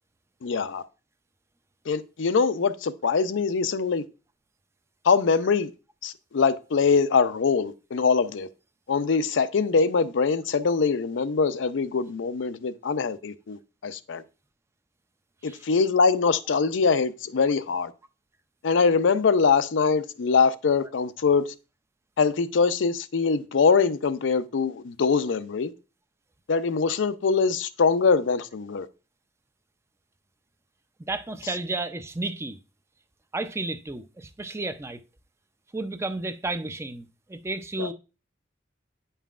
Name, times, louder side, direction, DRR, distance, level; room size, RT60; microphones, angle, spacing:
voice 1, 0.4-0.8 1.9-4.0 5.1-5.7 6.0-8.5 8.9-14.2 15.4-17.9 18.6-21.5 22.2-25.7 26.5-28.9 37.8-37.9, left 5 dB, 80° left, 0.5 m, -23 dB
voice 2, 31.0-32.6 33.3-35.0 35.7-37.9, right 2 dB, 15° right, 0.4 m, -32 dB
9.3 x 5.5 x 2.4 m
head